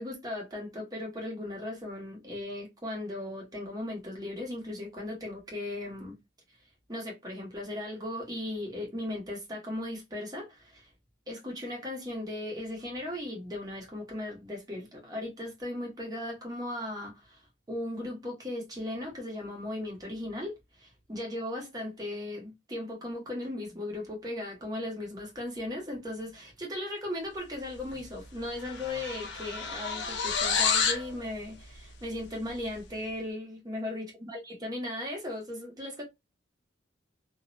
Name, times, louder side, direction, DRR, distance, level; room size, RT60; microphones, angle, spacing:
voice 1, 0.0-6.2 6.9-10.9 11.3-17.4 17.7-36.0, left 1 dB, 20° right, 0.9 m, -37 dB
sound 1, 27.9-28.1 28.4-31.1, left 6 dB, 60° left, 0.5 m, -29 dB
2.4 x 2.0 x 2.5 m
head